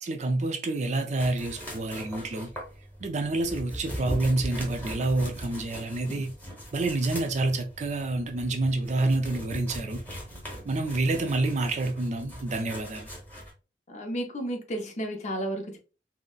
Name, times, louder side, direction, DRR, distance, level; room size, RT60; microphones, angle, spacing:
voice 1, 0.0-2.5 3.0-6.3 6.7-10.0 10.6-13.1, right 2 dB, 40° right, 0.4 m, -28 dB
sound 1, 1.2-13.5, equal, 10° left, 1.1 m, -40 dB
voice 2, 13.9-15.8, right 1 dB, 40° left, 0.6 m, -33 dB
3.9 x 2.0 x 2.3 m
head